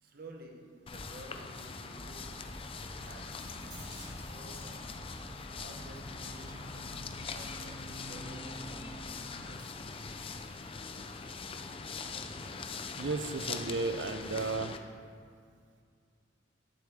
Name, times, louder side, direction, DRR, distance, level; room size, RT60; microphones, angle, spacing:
voice 1, 0.0-3.7 4.2-5.2 5.5-9.6, right 1 dB, 55° right, 2 dB, 1.0 m, -53 dB
sound 1, 0.9-14.8, left 4 dB, 30° left, 0.4 m, -42 dB
sound 2, 1.0-11.8, right 1 dB, 25° right, 2.1 m, -60 dB
sound 3, 2.0-9.5, equal, ahead, 1.3 m, -50 dB
voice 2, 13.0-14.8, right 3 dB, 70° right, 9 dB, 0.5 m, -34 dB
11.5 x 7.1 x 3.6 m, 2.2 s
head